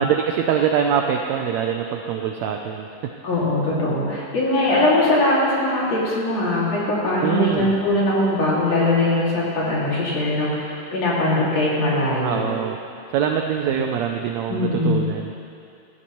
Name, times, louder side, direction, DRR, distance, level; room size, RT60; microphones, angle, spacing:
voice 1, 0.0-3.1 7.2-7.7 12.2-12.8 13.1-15.4, right 8 dB, 85° right, 3 dB, 1.6 m, -23 dB
voice 2, 3.2-12.4 13.6-13.8 14.5-15.0, left 1 dB, 55° left, -6 dB, 3.4 m, -21 dB
16.5 x 13.0 x 3.1 m, 2.6 s
omnidirectional pair, 3.7 m